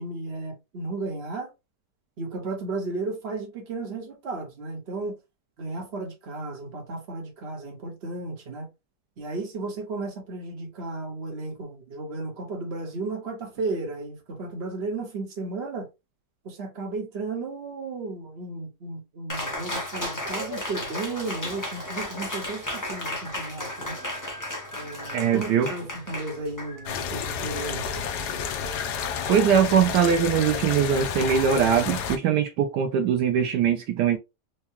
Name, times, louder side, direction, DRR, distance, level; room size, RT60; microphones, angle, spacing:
voice 1, 0.0-1.5 2.2-5.2 5.6-8.7 9.2-15.9 16.4-24.0 24.7-28.1, right 3 dB, 40° right, 1.2 m, -34 dB
Cheering, 19.3-28.2, left 1 dB, 15° left, 0.6 m, -35 dB
voice 2, 25.1-25.7 29.3-34.2, right 8 dB, 75° right, 1.1 m, -21 dB
sound 1, 26.9-32.2, left 7 dB, 75° left, 1.2 m, -30 dB
4.5 x 2.3 x 2.9 m
omnidirectional pair, 1.9 m